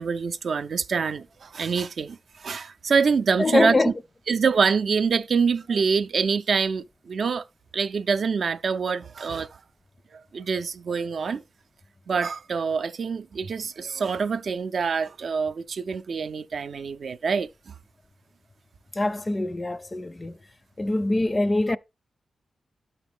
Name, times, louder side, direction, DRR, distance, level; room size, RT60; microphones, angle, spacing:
voice 1, 0.0-3.9 4.3-7.4 7.7-9.6 10.1-11.4 12.1-17.7, right 5 dB, 65° right, 0.4 m, -25 dB
voice 2, 3.4-3.9 18.9-20.4 20.8-21.8, left 2 dB, 25° left, 0.4 m, -24 dB
12.0 x 4.1 x 3.5 m
cardioid pair, 75°, 0 cm